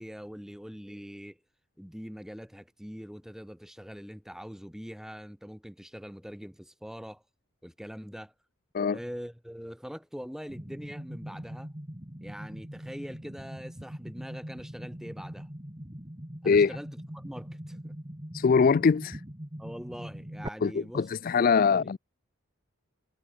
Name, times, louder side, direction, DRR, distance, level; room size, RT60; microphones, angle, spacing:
voice 1, 0.0-1.4 1.8-7.2 7.6-8.3 8.9-11.7 12.2-15.5 16.4-16.9 17.1-17.9 19.6-21.1 21.4-21.9, equal, ahead, 2.3 m, -43 dB
sound 1, 10.5-20.5, equal, 20° right, 2.2 m, -42 dB
voice 2, 18.3-19.2 20.6-22.0, left 5 dB, 40° left, 0.3 m, -23 dB
head